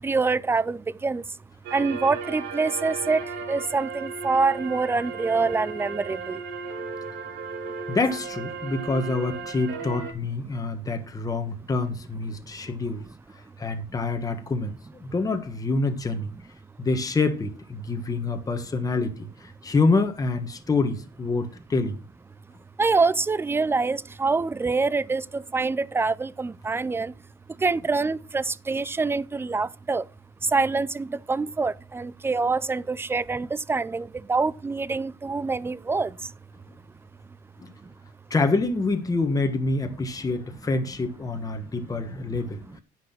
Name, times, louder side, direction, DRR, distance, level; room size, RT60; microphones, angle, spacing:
voice 1, 0.0-1.2 1.7-6.4 22.8-27.1 27.6-30.1 30.4-36.3 37.8-37.9 41.6-41.7 42.3-42.4 42.7-42.8, right 4 dB, 15° right, 0.5 m, -25 dB
sound 1, 1.6-10.1, right 5 dB, 85° right, 2.7 m, -35 dB
voice 2, 7.9-13.0 13.6-16.3 16.8-22.0 37.6-37.7 38.3-42.8, left 3 dB, 20° left, 1.5 m, -26 dB
10.0 x 6.2 x 6.0 m
cardioid pair, 110°, 17 cm